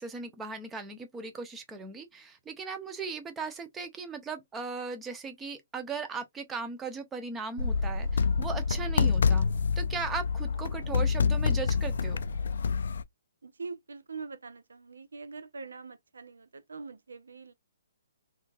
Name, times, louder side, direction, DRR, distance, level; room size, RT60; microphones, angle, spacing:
voice 1, 0.0-9.5 9.8-12.2, right 4 dB, 15° right, 0.7 m, -38 dB
sound 1, 7.6-13.0, left 5 dB, 70° left, 0.3 m, -27 dB
voice 2, 13.4-17.5, right 4 dB, 80° right, 0.4 m, -43 dB
3.7 x 2.5 x 2.6 m
hypercardioid pair, 135°, 0 cm